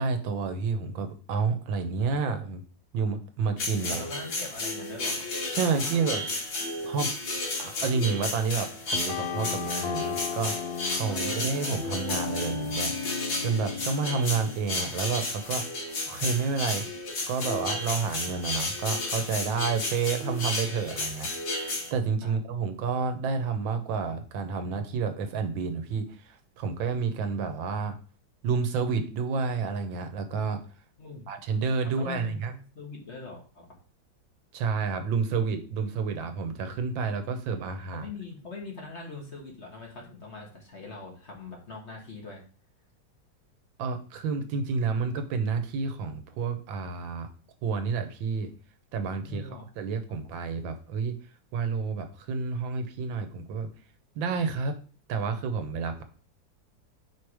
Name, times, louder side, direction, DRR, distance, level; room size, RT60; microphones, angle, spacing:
voice 1, 0.0-2.6 2.9-4.0 5.5-6.2 6.8-7.1 7.6-13.0 13.4-16.9 17.3-21.3 21.6-28.0 28.4-30.6 31.3-32.5 34.5-38.1 43.8-47.3 47.6-48.5 48.9-51.2 51.5-53.7 54.1-54.8 55.1-56.0, right 5 dB, 80° right, 8 dB, 1.6 m, -30 dB
sound 1, 3.6-21.9, left 2 dB, 80° left, 2.6 m, -33 dB
voice 2, 3.9-5.3 5.7-6.0 11.1-11.2 22.2-22.4 31.0-31.3 31.8-33.7 37.9-42.4 49.1-49.7 50.1-50.2, left 3 dB, 40° left, -1 dB, 1.6 m, -42 dB
sound 2, 8.9-14.5, left 6 dB, 65° left, 0.9 m, -35 dB
5.1 x 4.6 x 4.7 m, 0.39 s
omnidirectional pair, 2.1 m